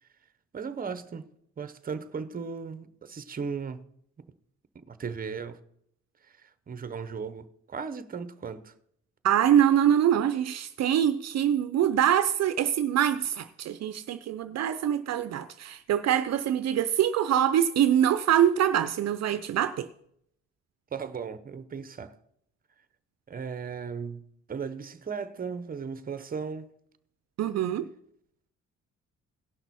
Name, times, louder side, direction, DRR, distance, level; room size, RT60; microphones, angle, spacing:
voice 1, 0.5-1.3 1.6-3.8 4.2-4.3 4.7-5.6 6.4-8.7 20.9-22.1 23.3-26.7, right 5 dB, 30° right, 0.8 m, -36 dB
voice 2, 9.2-19.9 27.4-27.9, right 10 dB, 60° right, 0.6 m, -24 dB
17.5 x 6.0 x 4.2 m
cardioid pair, 90°, 30 cm